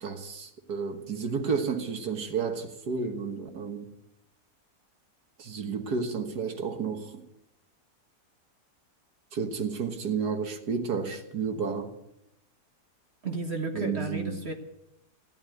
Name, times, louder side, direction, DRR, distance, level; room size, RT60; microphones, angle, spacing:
voice 1, 0.0-3.9 5.4-7.2 9.3-11.9 13.7-14.4, right 5 dB, 70° right, 2.1 m, -31 dB
voice 2, 13.2-14.5, right 3 dB, 45° right, 1.5 m, -33 dB
14.5 x 11.0 x 7.9 m
omnidirectional pair, 1.8 m